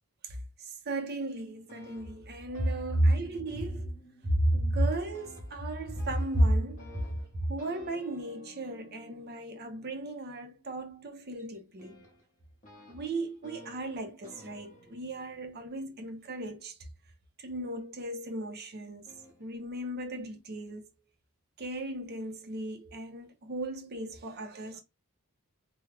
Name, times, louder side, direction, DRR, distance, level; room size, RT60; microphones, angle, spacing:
voice 1, 0.9-3.9 4.4-6.8 7.5-12.0 12.9-16.7 17.4-19.1 19.4-20.9 21.6-24.8, right 1 dB, 45° right, 0.7 m, -33 dB
sound 1, 1.5-4.8 5.1-16.7 17.5-18.4 19.1-19.4, left 1 dB, 35° left, 1.4 m, -55 dB
3.4 x 2.3 x 3.3 m
head